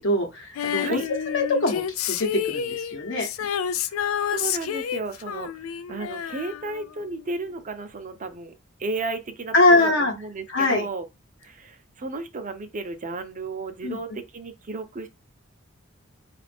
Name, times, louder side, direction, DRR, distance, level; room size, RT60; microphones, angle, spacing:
voice 1, 0.0-3.3 9.5-10.1 10.5-10.9 13.8-14.0, left 2 dB, 65° left, 0.9 m, -22 dB
Female singing, 0.6-7.2 7.5-7.6, left 9 dB, 85° left, 0.3 m, -29 dB
voice 2, 3.8-5.5 5.9-8.5 8.8-11.0 11.4-15.1, right 3 dB, 40° right, 0.6 m, -33 dB
4.7 x 2.5 x 3.4 m
head